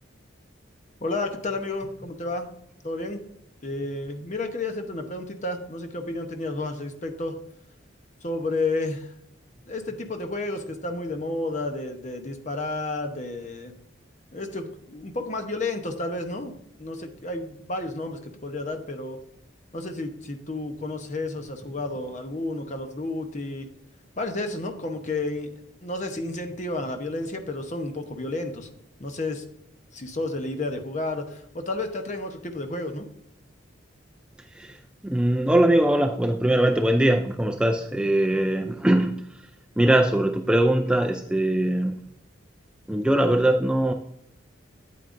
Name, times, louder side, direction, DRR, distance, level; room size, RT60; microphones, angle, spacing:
voice 1, 1.0-2.5 2.8-3.2 3.6-7.4 8.2-9.1 9.7-13.8 14.3-19.2 19.7-23.7 24.2-28.7 29.0-29.4 29.9-33.1, left 2 dB, 35° left, 5 dB, 0.9 m, -31 dB
voice 2, 34.5-39.5 39.8-42.0 42.9-43.9, right 1 dB, 5° right, 4 dB, 0.3 m, -22 dB
8.6 x 8.6 x 2.6 m, 0.75 s
head